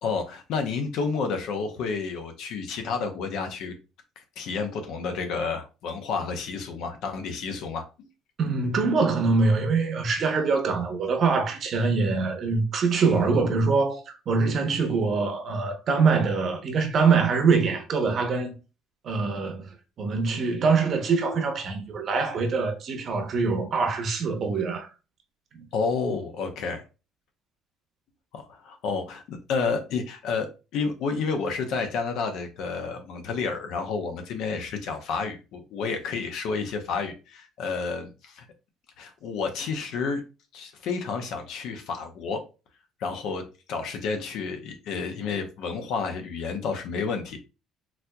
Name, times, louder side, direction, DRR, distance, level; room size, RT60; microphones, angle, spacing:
voice 1, 0.0-3.8 4.4-8.1 25.7-26.8 28.3-38.5 39.0-40.2 40.5-42.4 43.0-47.4, left 5 dB, 65° left, 0.7 m, -30 dB
voice 2, 8.4-18.5 19.0-24.9, right 4 dB, 40° right, 0.8 m, -24 dB
4.1 x 2.8 x 2.2 m
cardioid pair, 140°, 0 cm